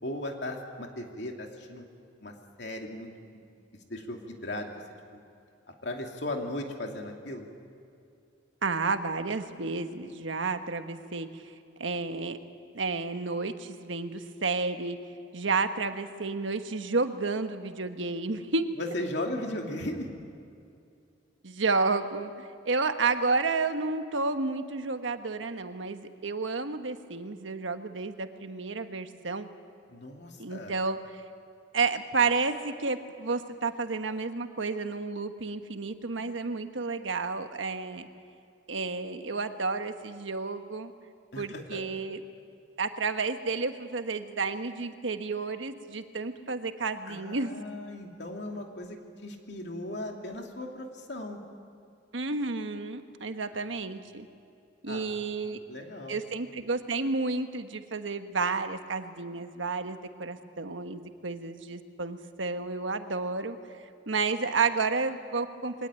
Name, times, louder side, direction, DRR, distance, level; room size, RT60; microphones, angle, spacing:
voice 1, 0.0-1.9 2.2-2.3 2.6-3.1 3.9-4.8 5.1-5.2 5.8-7.4 18.8-20.1 29.9-30.7 41.3-41.8 47.0-51.4 53.4-53.7 54.9-55.2 55.5-56.2, left 1 dB, 65° left, 2 dB, 2.7 m, -37 dB
voice 2, 8.6-11.4 11.8-12.4 12.7-15.0 15.3-18.7 21.4-29.5 30.4-31.0 31.7-38.1 38.7-40.9 41.4-42.2 42.8-47.5 52.1-54.3 54.8-55.6 56.1-63.6 64.1-65.9, right 4 dB, 85° right, 8 dB, 1.3 m, -31 dB
23.0 x 18.5 x 9.1 m, 2.5 s
head